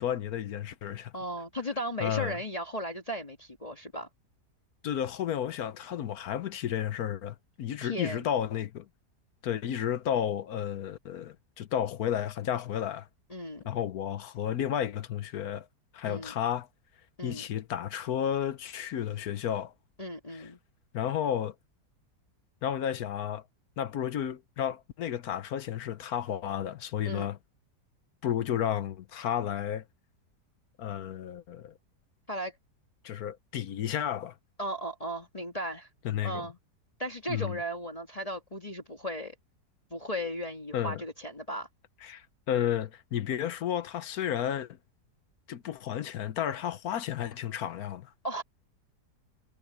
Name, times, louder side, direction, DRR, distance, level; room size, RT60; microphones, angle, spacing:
voice 1, 0.0-1.1 2.0-2.4 4.8-8.9 9.4-13.1 13.7-15.7 15.9-16.7 17.2-19.7 20.3-20.5 20.9-21.5 22.6-23.4 23.8-27.4 28.2-29.8 30.8-31.7 33.0-34.3 36.0-36.5 37.3-37.6 40.7-41.0 42.0-44.8 45.5-48.1, left 10 dB, 65° left, 1.2 m, -32 dB
voice 2, 1.1-4.1 7.8-8.3 13.3-13.7 16.1-16.3 17.2-17.4 20.0-20.6 27.0-27.3 32.3-32.6 34.6-35.9 36.2-36.6 37.0-39.3 39.9-41.7 48.2-48.4, equal, 20° left, 1.5 m, -36 dB
omnidirectional pair, 1.8 m